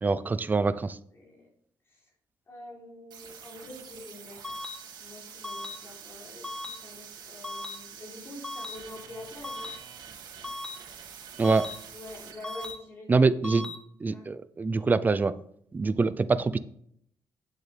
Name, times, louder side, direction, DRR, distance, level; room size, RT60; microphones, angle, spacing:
voice 1, 0.0-1.0 11.4-11.7 13.1-15.3 15.7-16.6, right 4 dB, 25° right, 14 dB, 0.5 m, -25 dB
voice 2, 1.1-1.5 1.9-2.1 2.5-4.6 5.0-9.7 11.9-13.2 14.1-14.3, left 1 dB, 35° left, -3 dB, 3.6 m, -46 dB
sound 1, 3.1-12.7, right 7 dB, 70° right, 2.0 m, -47 dB
sound 2, 4.4-4.8 5.4-5.8 6.4-6.8 7.4-7.8 8.4-8.8 9.4-9.8 10.4-10.8 11.4-11.8 12.4-12.8 13.4-13.8, left 2 dB, 10° left, 1.0 m, -37 dB
9.6 x 7.9 x 3.4 m, 0.67 s
cardioid pair, 125°, 8 cm